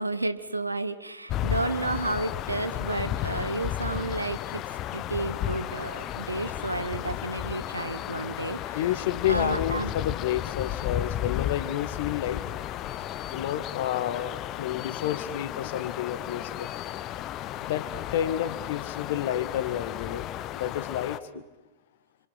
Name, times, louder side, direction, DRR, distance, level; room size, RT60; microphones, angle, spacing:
voice 1, 0.0-8.8 9.3-9.9, right 2 dB, 85° right, 12 dB, 1.2 m, -31 dB
sound 1, 1.3-21.2, left 12 dB, 35° left, 0.9 m, -34 dB
voice 2, 8.7-12.4 13.3-16.7 17.6-17.9 18.1-21.4, left 11 dB, 55° left, 11 dB, 1.8 m, -30 dB
28.5 x 26.0 x 6.0 m, 1.1 s
figure-of-eight pair, 90°, 0 cm